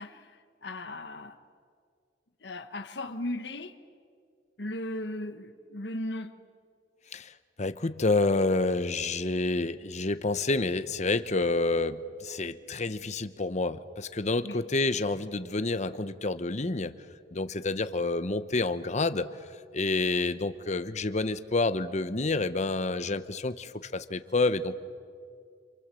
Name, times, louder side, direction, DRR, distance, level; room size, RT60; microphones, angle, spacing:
voice 1, 0.0-1.4 2.4-3.8 4.6-6.4 14.4-14.6 19.8-20.2, left 1 dB, 65° left, 1.4 m, -37 dB
voice 2, 7.1-16.9 17.3-19.3 19.7-24.8, left 3 dB, 40° left, 1.0 m, -28 dB
28.0 x 27.5 x 7.7 m
head